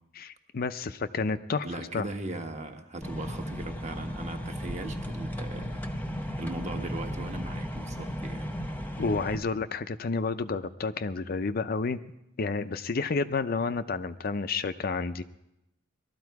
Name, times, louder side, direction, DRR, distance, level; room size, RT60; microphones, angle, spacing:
voice 1, 0.2-2.1 9.0-12.0 12.4-15.2, left 4 dB, 45° left, 10 dB, 0.5 m, -30 dB
voice 2, 1.6-5.8 6.4-8.5, right 2 dB, 35° right, 4 dB, 1.2 m, -38 dB
sound 1, 3.0-9.4, equal, 10° left, 0.9 m, -35 dB
19.0 x 13.0 x 4.7 m, 0.85 s
head